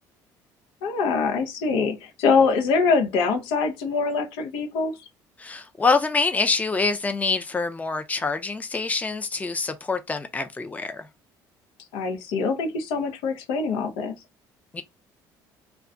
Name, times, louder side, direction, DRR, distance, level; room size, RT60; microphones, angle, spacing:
voice 1, 0.8-5.0 11.9-14.1, left 4 dB, 85° left, 0.7 m, -24 dB
voice 2, 5.4-11.1 14.7-14.8, left 4 dB, 15° left, 0.5 m, -25 dB
2.3 x 2.2 x 3.7 m
supercardioid pair, 90°, 9 cm